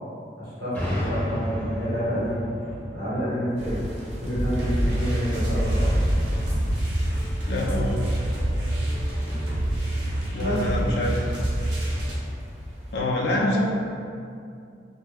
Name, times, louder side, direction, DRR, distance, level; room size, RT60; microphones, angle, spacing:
voice 1, 0.4-2.5 2.9-3.9 4.2-5.9 10.4-10.6, equal, 60° right, -10 dB, 1.1 m, -28 dB
sound 1, 0.7-4.4, equal, 10° left, 0.5 m, -32 dB
sound 2, 3.6-13.0, equal, 40° right, 0.5 m, -30 dB
sound 3, 4.5-12.1, right 1 dB, 75° right, 0.7 m, -27 dB
voice 2, 7.5-8.0 10.3-11.4 12.9-13.7, left 1 dB, 65° left, -1 dB, 0.4 m, -25 dB
2.3 x 2.2 x 3.2 m, 2.4 s
head